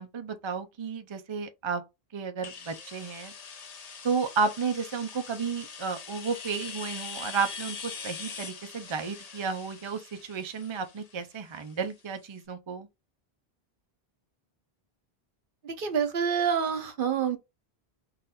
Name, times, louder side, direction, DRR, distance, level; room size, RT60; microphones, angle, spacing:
voice 1, 0.0-1.8 2.1-3.3 4.0-12.9, right 5 dB, 35° right, 0.5 m, -32 dB
sound 1, 2.4-12.1, left 5 dB, 45° left, 0.6 m, -43 dB
voice 2, 15.6-17.4, right 7 dB, 60° right, 0.9 m, -27 dB
4.1 x 2.6 x 4.0 m
omnidirectional pair, 1.1 m